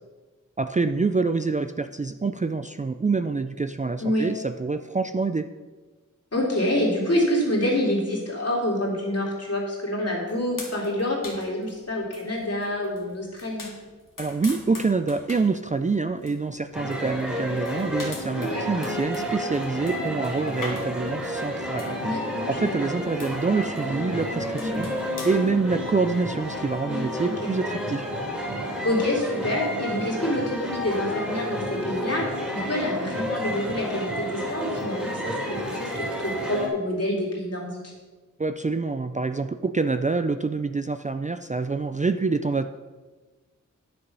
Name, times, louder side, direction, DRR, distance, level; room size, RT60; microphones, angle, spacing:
voice 1, 0.6-5.5 14.2-22.0 22.5-24.9 25.2-28.1 38.4-42.7, right 4 dB, 25° right, 9 dB, 0.4 m, -26 dB
voice 2, 6.3-13.7 18.3-18.7 22.0-22.9 24.6-24.9 26.8-27.5 28.8-37.9, left 1 dB, 50° left, -3 dB, 2.9 m, -27 dB
sound 1, 10.3-25.5, left 2 dB, 90° left, 2.0 m, -44 dB
sound 2, 16.7-36.7, equal, 5° right, 2.4 m, -31 dB
9.6 x 6.9 x 5.4 m, 1.3 s
wide cardioid pair, 80°, 31 cm